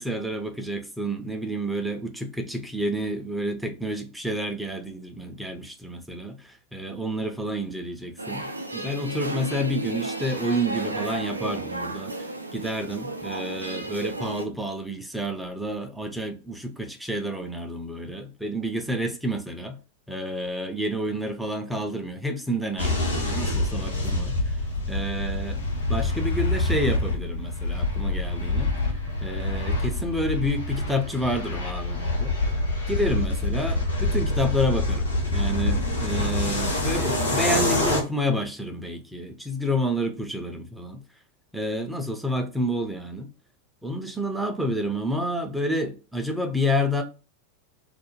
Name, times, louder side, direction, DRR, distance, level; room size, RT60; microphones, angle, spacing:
voice 1, 0.0-19.8 20.1-25.6 25.9-28.7 29.2-32.3 32.9-41.0 41.5-43.3 43.8-47.0, equal, ahead, 0.5 m, -29 dB
sound 1, 8.2-14.5, right 2 dB, 80° right, 0.3 m, -33 dB
sound 2, 22.8-38.0, left 2 dB, 80° left, 0.9 m, -26 dB
2.4 x 2.1 x 2.9 m
figure-of-eight pair, 90°, 0 cm